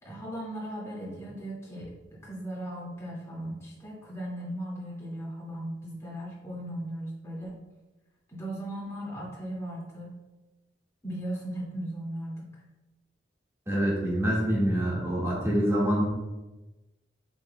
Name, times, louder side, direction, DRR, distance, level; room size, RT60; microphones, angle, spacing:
voice 1, 0.0-7.6 8.3-10.2 11.0-12.5, right 1 dB, 15° left, -6 dB, 2.2 m, -37 dB
voice 2, 13.7-16.0, equal, 15° right, -5 dB, 1.7 m, -26 dB
7.9 x 5.5 x 2.3 m, 1.1 s
head